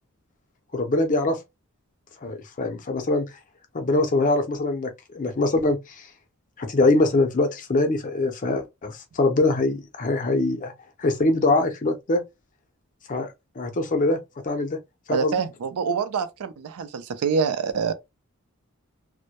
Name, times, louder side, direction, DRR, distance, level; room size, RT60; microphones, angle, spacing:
voice 1, 0.7-1.4 2.2-3.3 3.7-6.1 6.6-10.7 11.0-12.2 13.1-13.3 13.6-14.2 14.4-14.8 15.1-15.4, left 2 dB, 35° left, 0.5 m, -23 dB
voice 2, 15.1-17.9, right 5 dB, 85° right, 0.4 m, -26 dB
2.1 x 2.1 x 2.8 m
head